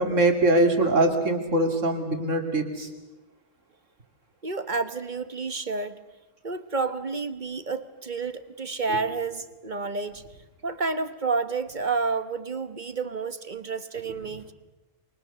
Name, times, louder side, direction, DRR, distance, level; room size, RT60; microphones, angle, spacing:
voice 1, 0.0-2.9, right 2 dB, 65° right, 4 dB, 3.2 m, -22 dB
voice 2, 4.4-6.0 6.4-10.2 10.6-14.5, right 4 dB, 35° right, 12 dB, 1.2 m, -30 dB
28.5 x 24.0 x 6.9 m, 1.1 s
omnidirectional pair, 1.4 m